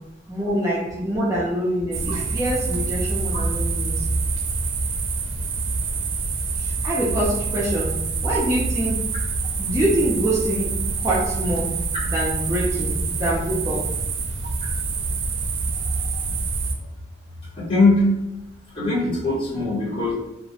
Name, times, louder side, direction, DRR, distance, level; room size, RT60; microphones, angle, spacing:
voice 1, 0.3-4.1 6.6-7.9 8.2-9.0 9.6-11.7 12.1-13.8, right 1 dB, 15° right, -6 dB, 0.4 m, -25 dB
sound 1, 1.9-16.7, right 3 dB, 80° right, 0.4 m, -26 dB
voice 2, 17.6-18.2 18.7-20.1, left 2 dB, 30° left, -7 dB, 0.9 m, -21 dB
2.3 x 2.1 x 2.7 m, 0.87 s
head